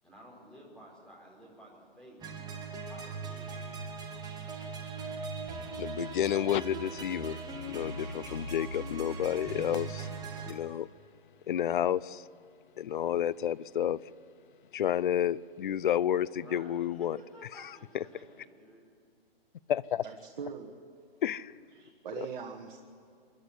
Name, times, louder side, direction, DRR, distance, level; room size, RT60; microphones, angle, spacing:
voice 1, 0.0-2.2 2.9-3.7 16.3-18.8, equal, 5° left, 4.6 m, -53 dB
sound 1, 2.2-10.5, right 3 dB, 15° right, 1.9 m, -39 dB
voice 2, 5.8-7.4 7.7-10.1 10.5-10.9 11.5-12.3 12.8-14.0 14.7-17.2 17.9-18.0 19.7-20.0 21.2-21.5 22.2-22.3, left 10 dB, 55° left, 0.6 m, -30 dB
voice 3, 20.0-20.7 21.7-22.8, right 7 dB, 50° right, 1.8 m, -41 dB
26.5 x 11.5 x 9.7 m
hypercardioid pair, 145°, 30 cm